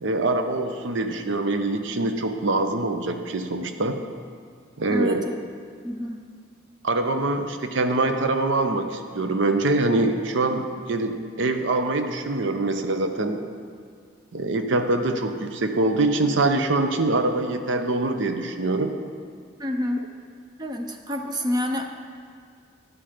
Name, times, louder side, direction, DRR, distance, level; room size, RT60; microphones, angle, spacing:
voice 1, 0.0-4.0 4.8-5.2 6.8-13.4 14.3-18.9, right 2 dB, 70° right, 7 dB, 0.6 m, -24 dB
voice 2, 4.9-5.4 5.8-6.2 19.6-20.0 20.6-21.9, left 1 dB, 20° right, 4 dB, 0.5 m, -28 dB
11.0 x 5.9 x 5.0 m, 2.1 s
head